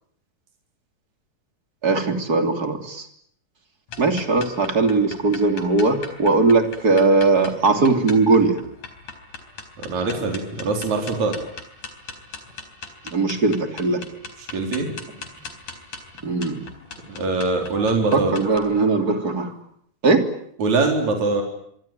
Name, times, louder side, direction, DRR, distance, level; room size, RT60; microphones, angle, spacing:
voice 1, 1.8-3.1 4.0-8.5 13.1-14.0 16.2-16.6 18.1-19.5 20.0-20.2, right 3 dB, 30° right, 6 dB, 3.3 m, -19 dB
sound 1, 3.9-18.6, left 4 dB, 80° left, 5.5 m, -39 dB
voice 2, 9.8-11.4 14.5-14.9 17.1-18.3 20.6-21.4, right 3 dB, 65° right, 3 dB, 5.3 m, -22 dB
26.0 x 24.5 x 9.3 m, 0.68 s
omnidirectional pair, 3.5 m